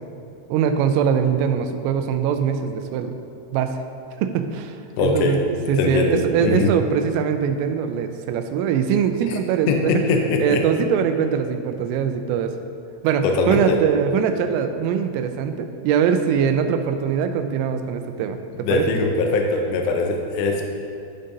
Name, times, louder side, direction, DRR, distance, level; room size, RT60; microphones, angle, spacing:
voice 1, 0.5-3.1 3.5-3.8 4.2-5.4 5.7-10.0 10.4-12.5 13.0-18.9, right 7 dB, 85° right, 7 dB, 3.0 m, -22 dB
voice 2, 5.0-5.4 5.8-6.7 9.7-10.6 13.2-13.8 18.6-20.6, left 3 dB, 80° left, 1 dB, 2.5 m, -21 dB
15.0 x 5.3 x 2.7 m, 2.6 s
omnidirectional pair, 5.9 m